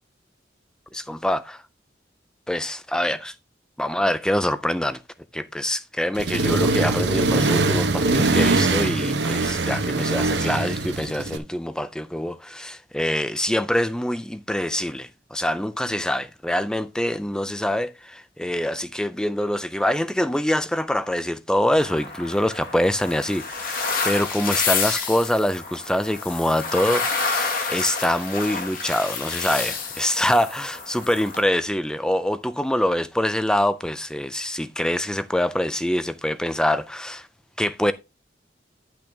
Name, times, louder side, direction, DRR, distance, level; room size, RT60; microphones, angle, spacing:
voice 1, 0.9-1.6 2.5-3.3 3.8-5.0 5.3-37.3 37.6-37.9, left 1 dB, 5° left, 0.3 m, -25 dB
Accelerating revving vroom, 6.2-11.4, right 2 dB, 70° right, 0.9 m, -22 dB
sound 1, 21.8-31.4, left 4 dB, 50° left, 1.8 m, -29 dB
10.0 x 6.0 x 3.5 m
head